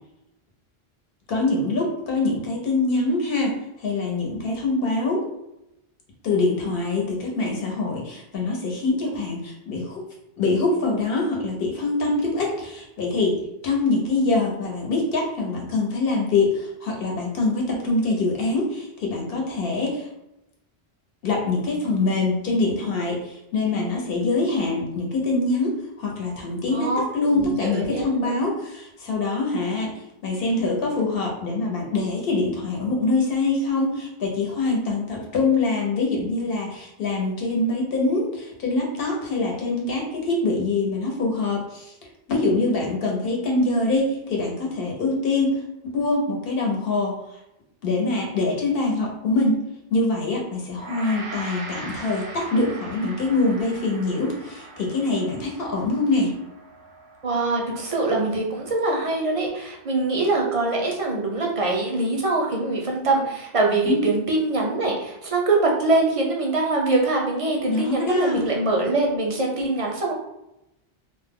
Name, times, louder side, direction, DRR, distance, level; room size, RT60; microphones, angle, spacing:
voice 1, 1.3-5.2 6.2-10.0 10.4-20.1 21.2-29.9 30.2-41.9 42.3-45.6 45.9-47.2 47.8-49.6 49.9-56.3 63.8-64.0 67.7-68.4, left 3 dB, 70° left, -1 dB, 1.0 m, -24 dB
voice 2, 26.7-27.0 27.3-28.3 57.2-70.1, right 2 dB, 45° right, -1 dB, 0.5 m, -23 dB
Gong, 50.7-60.1, right 3 dB, 85° right, 0.8 m, -41 dB
2.2 x 2.1 x 3.5 m, 0.86 s
omnidirectional pair, 1.0 m